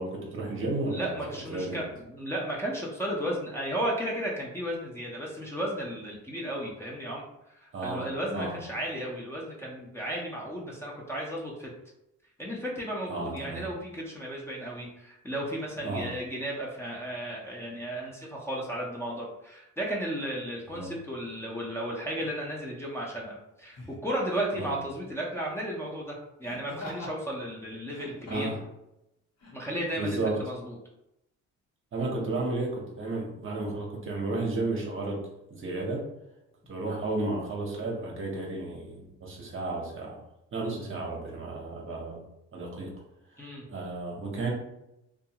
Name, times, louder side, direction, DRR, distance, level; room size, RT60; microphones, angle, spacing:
voice 1, 0.0-1.7 7.7-8.1 8.3-8.6 13.1-13.7 15.8-16.1 20.7-20.9 24.6-24.7 28.3-28.6 30.0-30.4 31.9-35.2 35.5-36.0 36.7-40.2 40.5-42.2 42.5-42.9 43.7-44.5, right 2 dB, 45° right, -1 dB, 0.8 m, -33 dB
voice 2, 0.9-11.7 12.4-28.6 29.5-30.8 40.7-40.9 43.4-43.6, right 1 dB, 10° left, -4 dB, 0.6 m, -34 dB
Laughter, 22.2-22.4 23.7-24.1 26.4-27.2 27.8-28.6 29.4-29.5, left 1 dB, 60° left, 1.1 m, -43 dB
2.5 x 2.3 x 2.8 m, 0.87 s
cardioid pair, 90°, 30 cm